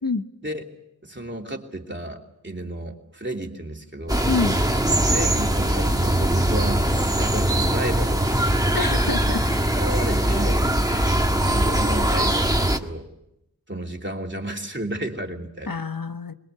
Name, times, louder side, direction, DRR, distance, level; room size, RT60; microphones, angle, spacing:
voice 1, 1.0-4.3 5.0-6.8 7.2-8.2 9.4-10.7 11.5-13.1 13.7-15.8, right 1 dB, 30° right, 1 dB, 3.1 m, -32 dB
sound 1, 4.1-12.8, right 1 dB, 10° right, 1.8 m, -21 dB
voice 2, 8.7-9.4 10.9-11.2 15.7-16.3, left 4 dB, 65° left, 8 dB, 1.3 m, -27 dB
22.0 x 22.0 x 8.2 m, 0.85 s
wide cardioid pair, 55°, 36 cm